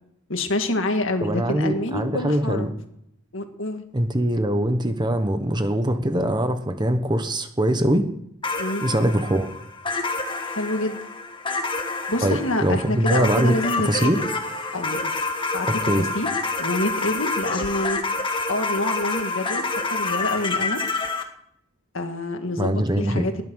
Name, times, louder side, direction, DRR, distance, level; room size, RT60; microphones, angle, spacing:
voice 1, 0.3-2.7 3.3-3.8 8.6-8.8 10.5-11.0 12.1-14.2 14.7-15.1 15.5-15.7 16.0-16.3 16.6-18.0 18.5-20.8 21.9-23.4, left 1 dB, 60° left, 6 dB, 2.0 m, -27 dB
voice 2, 1.2-2.7 3.9-8.0 8.8-9.5 12.2-13.5 13.8-14.2 15.7-16.1 22.6-23.3, right 1 dB, 20° right, 8 dB, 1.2 m, -22 dB
sound 1, 8.4-21.2, left 3 dB, 20° left, 1.5 m, -28 dB
20.5 x 11.0 x 6.4 m, 0.77 s
head